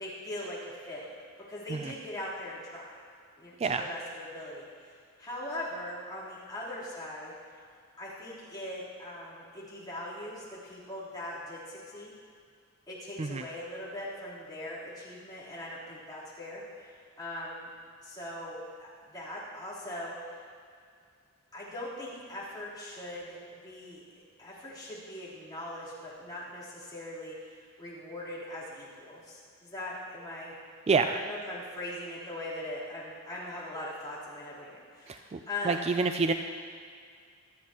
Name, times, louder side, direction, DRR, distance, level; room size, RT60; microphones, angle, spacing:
voice 1, 0.0-2.9 3.4-7.3 8.0-12.1 12.9-17.7 18.0-20.4 21.5-24.0 24.4-30.5 31.1-36.0, left 1 dB, 20° left, -10 dB, 3.8 m, -41 dB
voice 2, 3.6-3.9 13.2-13.4 30.9-31.2 35.1-35.4 35.6-36.3, right 4 dB, 30° right, 7 dB, 0.3 m, -28 dB
26.0 x 8.6 x 3.0 m, 2.2 s
head